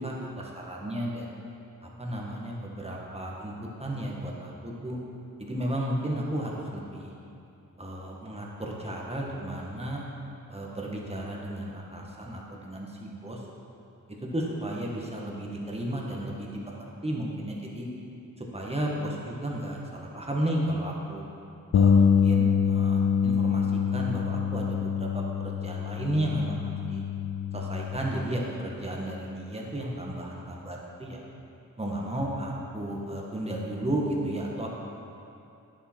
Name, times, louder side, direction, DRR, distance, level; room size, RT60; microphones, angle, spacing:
voice 1, 0.0-1.4 1.8-5.0 5.4-7.1 7.8-10.0 10.5-13.4 14.3-17.9 18.4-21.2 21.7-23.7 23.9-26.6 26.9-27.0 27.5-31.2 31.8-34.7, right 1 dB, 20° right, -3 dB, 1.7 m, -33 dB
Bass guitar, 21.7-28.0, left 7 dB, 65° left, 0.6 m, -25 dB
10.0 x 7.4 x 4.6 m, 2.6 s
wide cardioid pair, 80°, 33 cm